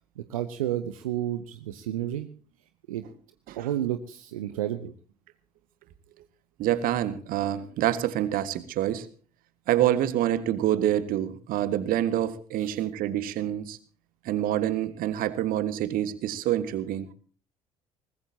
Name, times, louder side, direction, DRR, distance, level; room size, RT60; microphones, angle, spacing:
voice 1, 0.2-2.3 2.9-3.1 3.5-4.9 12.6-12.8, right 12 dB, 70° right, 1.0 m, -31 dB
voice 2, 6.6-9.1 9.7-13.8 14.2-17.1, right 12 dB, 50° right, 1.6 m, -27 dB
22.0 x 20.0 x 2.8 m
figure-of-eight pair, 55°, 18 cm